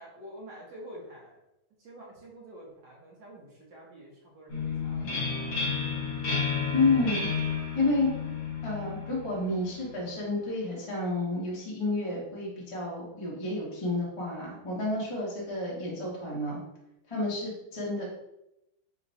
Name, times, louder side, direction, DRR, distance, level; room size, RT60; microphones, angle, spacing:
voice 1, 0.0-1.4 1.8-6.0 17.7-18.0, right 1 dB, 65° right, -3 dB, 1.5 m, -48 dB
sound 1, 4.5-10.1, left 5 dB, 50° left, 1.3 m, -32 dB
voice 2, 6.7-7.3 7.7-8.1 8.6-16.6 17.1-18.1, left 2 dB, 25° left, -5 dB, 0.7 m, -30 dB
3.9 x 2.2 x 4.0 m, 0.87 s
omnidirectional pair, 2.3 m